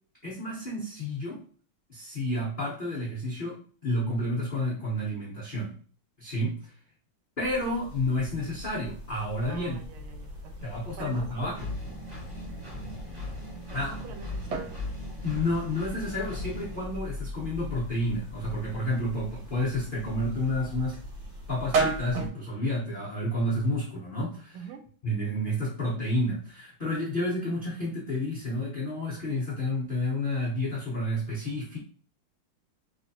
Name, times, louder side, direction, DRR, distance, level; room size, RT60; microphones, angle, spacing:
voice 1, 0.2-1.4 1.9-5.8 6.2-6.7 7.4-9.8 10.6-11.6 13.7-13.9 15.2-21.0 21.5-24.6 25.0-31.8, left 1 dB, 65° left, -6 dB, 0.5 m, -30 dB
sound 1, 7.4-22.3, left 2 dB, 50° right, 1.6 m, -42 dB
voice 2, 9.4-11.7 13.7-15.2 24.5-24.9, right 7 dB, 90° right, 6 dB, 1.5 m, -46 dB
Engine, 11.5-16.8, left 1 dB, 30° right, 1.4 m, -39 dB
sound 2, 13.1-23.8, right 4 dB, 70° right, 1.6 m, -37 dB
3.3 x 3.3 x 2.7 m, 0.43 s
omnidirectional pair, 2.3 m